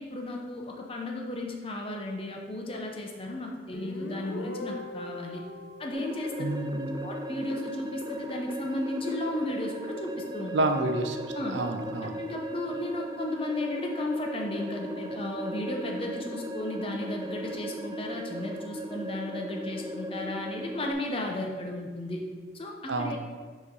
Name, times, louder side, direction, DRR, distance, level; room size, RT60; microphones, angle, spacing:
voice 1, 0.0-5.4 5.8-6.3 7.0-10.6 11.3-11.6 12.2-22.2 22.5-23.2, left 1 dB, 30° left, 1 dB, 0.6 m, -34 dB
Guitar, 3.7-7.2, left 2 dB, 75° left, 0.6 m, -41 dB
sound 1, 5.9-20.9, right 1 dB, 20° right, 0.3 m, -37 dB
voice 2, 6.4-7.1 10.5-11.2 11.5-12.1 22.9-23.2, right 2 dB, 70° right, 6 dB, 0.5 m, -29 dB
6.0 x 3.1 x 5.3 m, 1.5 s
head